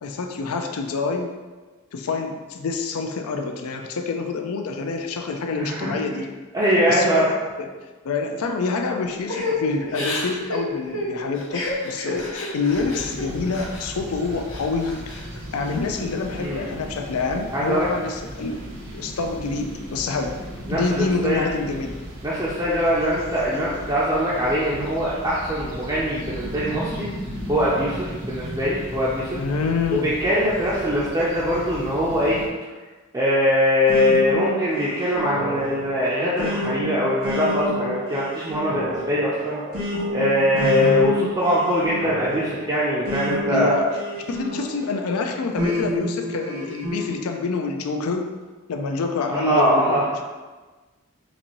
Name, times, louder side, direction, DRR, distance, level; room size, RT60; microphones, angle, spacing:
voice 1, 0.0-1.3 1.9-6.3 6.9-7.7 8.0-15.3 15.5-18.6 18.9-20.3 20.7-22.0 29.3-30.1 40.5-41.1 43.5-43.9 44.3-48.3 48.7-50.2, left 4 dB, 80° left, 4 dB, 0.4 m, -27 dB
voice 2, 5.5-6.2 6.5-7.2 16.4-16.6 17.5-17.9 20.1-20.2 20.7-21.5 22.2-27.1 27.5-29.4 29.9-32.4 33.1-39.6 40.1-43.9 49.3-50.1, equal, 15° right, -8 dB, 0.4 m, -22 dB
Crying sobbing / Breathing, 9.3-13.9 14.3-15.2 15.6-16.4, left 2 dB, 60° left, 0.7 m, -30 dB
sound 1, 12.7-32.5, equal, 60° right, 0.8 m, -36 dB
sound 2, 33.9-44.9 45.6-47.1, left 1 dB, 75° right, 1.2 m, -29 dB
4.1 x 2.6 x 3.0 m, 1.3 s
head